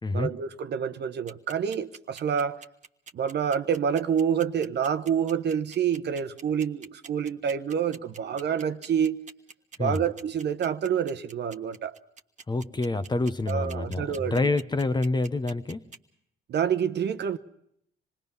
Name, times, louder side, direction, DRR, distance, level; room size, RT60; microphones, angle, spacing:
voice 1, 0.1-2.6 3.1-9.2 9.8-11.9 13.5-14.4 16.5-17.4, right 8 dB, 60° right, 1.0 m, -27 dB
sound 1, 1.3-16.0, right 5 dB, 40° right, 1.3 m, -46 dB
voice 2, 12.5-15.8, left 2 dB, 20° left, 1.0 m, -27 dB
26.5 x 20.0 x 5.5 m
cardioid pair, 90°, 20 cm